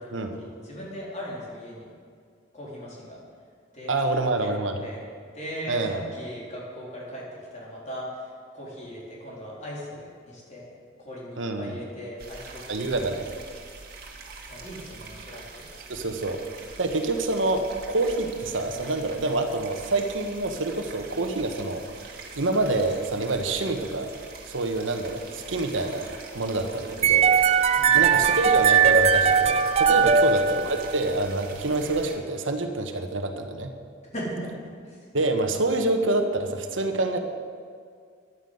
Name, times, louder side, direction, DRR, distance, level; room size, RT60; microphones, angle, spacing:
voice 1, 0.0-1.9 2.5-3.2 3.7-3.9 4.4-7.2 7.5-10.7 11.0-13.0 14.5-15.7 27.7-28.4 30.0-30.4 34.1-34.5 34.8-35.1, equal, 35° left, -4 dB, 3.7 m, -39 dB
voice 2, 3.9-4.7 5.7-6.0 11.4-11.8 12.7-13.3 15.9-16.4 16.8-24.1 24.5-26.1 26.3-27.3 27.7-33.7 35.1-37.2, right 2 dB, 85° right, 6 dB, 1.2 m, -27 dB
sound 1, 12.2-32.2, right 3 dB, 55° right, 2.0 m, -44 dB
sound 2, 27.0-31.1, right 6 dB, 35° right, 0.4 m, -19 dB
11.0 x 9.4 x 8.0 m, 2.1 s
head